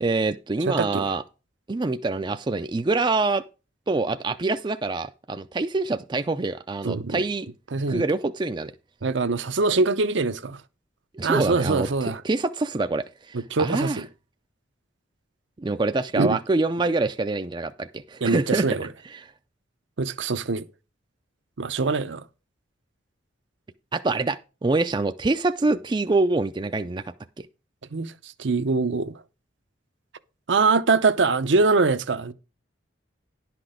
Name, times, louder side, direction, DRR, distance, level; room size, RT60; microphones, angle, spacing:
voice 1, 0.0-1.2 1.7-3.4 3.9-7.5 7.9-8.7 11.1-11.9 12.2-14.0 15.6-18.7 19.1-19.3 23.9-27.0, right 3 dB, 25° right, 0.4 m, -25 dB
voice 2, 0.7-1.1 6.8-7.2 7.7-8.0 9.0-10.6 11.2-12.2 13.3-14.1 16.2-16.4 18.2-18.9 20.0-20.7 21.6-22.2 27.9-29.1 30.5-32.3, right 3 dB, 70° right, 0.7 m, -23 dB
11.0 x 6.0 x 4.9 m
head